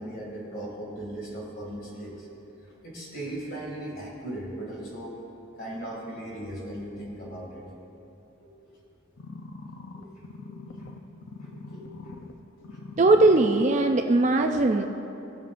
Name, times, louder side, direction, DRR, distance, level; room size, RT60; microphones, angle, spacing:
voice 1, 0.0-2.3 2.6-5.2 5.6-7.7 8.4-8.8 9.9-10.2 10.5-10.7 11.3-12.1 12.6-12.8, right 1 dB, 45° left, -4 dB, 2.4 m, -38 dB
sound 1, 9.2-12.3 12.6-13.6 14.2-14.3, left 3 dB, 65° left, 0.6 m, -42 dB
voice 2, 13.0-14.9, right 2 dB, 35° right, 5 dB, 0.4 m, -20 dB
18.5 x 7.1 x 2.6 m, 2.9 s
head